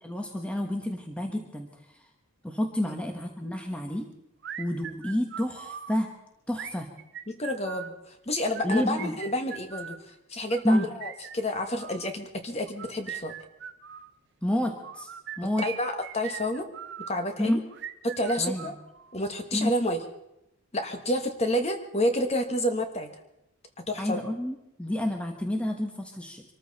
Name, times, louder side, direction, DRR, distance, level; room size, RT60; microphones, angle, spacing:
voice 1, 0.0-1.7 2.4-4.1 4.6-6.1 6.5-6.9 8.6-9.1 10.6-10.9 14.4-15.1 15.4-15.7 17.4-17.6 18.4-18.7 19.5-19.7 24.0-26.4, left 1 dB, 5° left, 3 dB, 1.1 m, -29 dB
sound 1, 4.4-5.9 6.5-8.0 8.4-10.0 10.5-12.1 12.7-14.1 14.8-17.1 17.7-19.2, right 9 dB, 50° right, 0.9 m, -40 dB
voice 2, 7.3-13.3 15.6-16.7 17.1-17.6 18.0-18.7 19.1-20.0 20.7-23.1 23.9-24.2, left 1 dB, 30° left, 6 dB, 1.4 m, -29 dB
24.5 x 14.0 x 4.1 m, 0.84 s
head